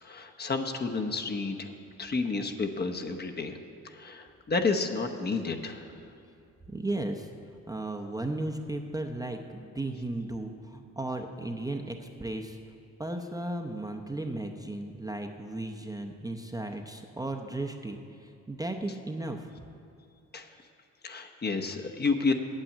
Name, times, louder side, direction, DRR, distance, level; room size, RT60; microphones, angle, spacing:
voice 1, 0.0-1.7 2.0-3.6 3.8-6.0 20.3-20.5 21.0-22.3, left 4 dB, 35° left, 4 dB, 0.9 m, -30 dB
voice 2, 6.7-7.3 7.7-12.6 13.0-19.5, right 2 dB, 10° right, 3 dB, 0.7 m, -35 dB
8.9 x 7.7 x 8.4 m, 2.5 s
cardioid pair, 90°, 30 cm